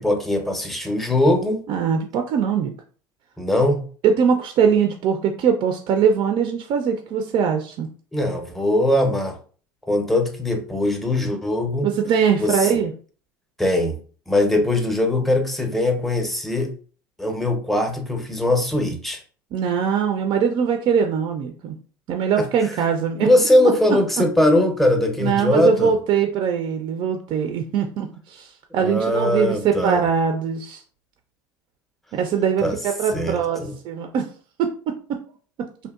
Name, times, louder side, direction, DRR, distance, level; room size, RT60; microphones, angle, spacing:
voice 1, 0.0-1.6 3.4-3.8 8.1-9.4 9.9-11.9 12.4-12.7 13.6-14.0 14.3-16.7 17.2-19.2 22.4-22.5 23.2-25.9 28.8-30.0 32.6-32.8 33.1-33.7, left 1 dB, ahead, 4 dB, 0.6 m, -21 dB
voice 2, 1.7-2.7 4.0-7.9 11.8-12.9 19.5-21.8 22.1-23.3 25.2-30.8 32.1-34.3 34.6-34.9, right 7 dB, 45° right, 5 dB, 0.4 m, -21 dB
2.7 x 2.1 x 2.3 m, 0.41 s
hypercardioid pair, 80°, 11 cm